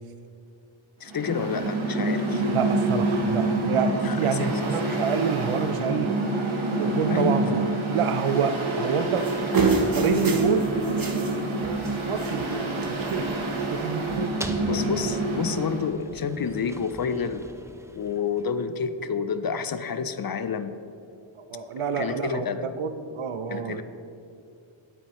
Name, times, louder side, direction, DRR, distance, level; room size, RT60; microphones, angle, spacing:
voice 1, 1.0-2.4 4.0-5.0 7.1-7.4 14.7-17.5 17.9-20.7 22.0-22.7 23.5-23.8, left 6 dB, 45° left, 11 dB, 0.5 m, -29 dB
Mechanical fan, 1.0-15.9, right 2 dB, 70° right, 1.4 m, -27 dB
voice 2, 2.5-6.3 6.8-9.3 9.9-10.7 10.9-15.1 21.4-23.8, right 6 dB, 85° right, 10 dB, 0.6 m, -28 dB
sound 1, 9.2-11.4 11.6-11.9 12.2-12.5 12.8-13.4 14.1-14.2, right 3 dB, 45° right, 0.9 m, -25 dB
sound 2, 12.9-18.8, right 1 dB, 5° right, 0.6 m, -42 dB
9.0 x 8.6 x 3.0 m, 2.6 s
cardioid pair, 45°, 50 cm